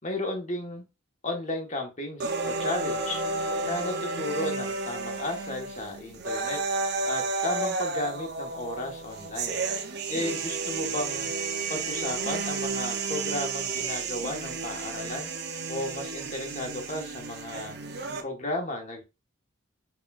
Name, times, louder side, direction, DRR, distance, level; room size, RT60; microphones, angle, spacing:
voice 1, 0.0-0.9 1.2-3.2 3.6-6.6 7.0-9.6 10.1-11.3 11.7-15.3 15.7-17.8 18.2-19.0, left 1 dB, 35° left, 2 dB, 1.4 m, -34 dB
sound 1, 2.2-18.2, right 3 dB, 55° right, 0.7 m, -32 dB
5.8 x 3.5 x 2.5 m, 0.25 s
head